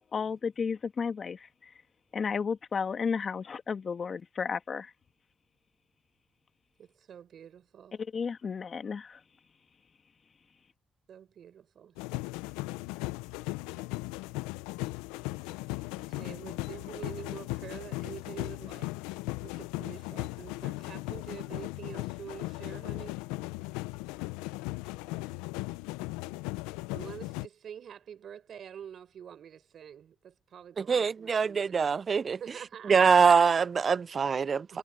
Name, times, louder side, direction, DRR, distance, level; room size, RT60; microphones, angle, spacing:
voice 1, 0.0-1.8 2.1-4.9 8.1-9.2, left 6 dB, 50° left, 2.1 m, -33 dB
voice 2, 6.8-8.0 11.1-12.0 15.9-18.9 19.4-23.2 26.9-31.8 32.4-33.2 34.7-34.8, right 8 dB, 65° right, 4.5 m, -46 dB
sound 1, 12.0-27.5, left 21 dB, 90° left, 0.5 m, -37 dB
voice 3, 30.8-32.4 32.8-34.8, right 6 dB, 50° right, 0.4 m, -24 dB
hypercardioid pair, 50°, 0 cm